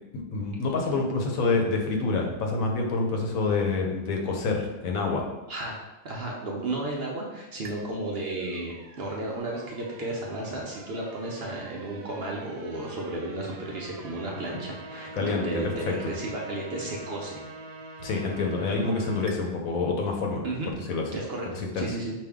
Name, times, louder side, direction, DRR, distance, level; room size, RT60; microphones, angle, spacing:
voice 1, 0.1-5.3 15.1-15.9 18.0-20.4 20.9-21.0 21.8-21.9, left 3 dB, 75° left, 1 dB, 1.2 m, -27 dB
voice 2, 5.5-8.7 9.0-17.4 20.4-20.7 21.1-22.1, right 2 dB, 55° right, -2 dB, 0.8 m, -33 dB
sound 1, 7.6-19.4, right 3 dB, 85° right, 1.0 m, -45 dB
5.1 x 2.6 x 3.5 m, 1.0 s
omnidirectional pair, 1.5 m